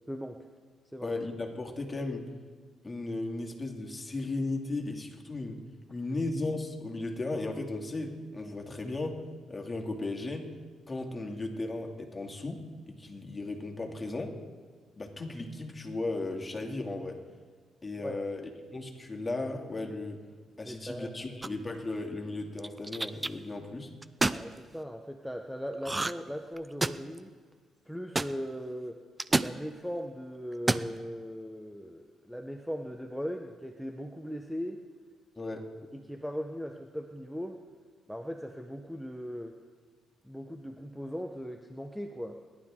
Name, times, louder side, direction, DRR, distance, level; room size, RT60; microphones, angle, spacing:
voice 1, 0.1-0.4 0.9-1.1 18.0-18.2 20.6-21.4 24.3-27.3 27.9-29.0 29.3-34.8 35.9-37.6 38.1-39.5 40.2-42.4, equal, ahead, 3 dB, 1.0 m, -39 dB
voice 2, 1.0-2.3 2.8-5.6 5.9-9.2 9.5-10.5 10.9-14.4 14.9-17.2 17.8-20.2 20.6-23.9 35.4-35.6, left 2 dB, 25° left, 1 dB, 2.4 m, -36 dB
sound 1, 21.4-21.8 22.6-23.3 24.0-24.4 25.8-26.3 26.6-27.2 28.2-28.3 29.2-29.5 30.5-30.9, right 2 dB, 15° right, 0.5 m, -28 dB
29.0 x 12.0 x 3.7 m, 1.5 s
cardioid pair, 90°, 0 cm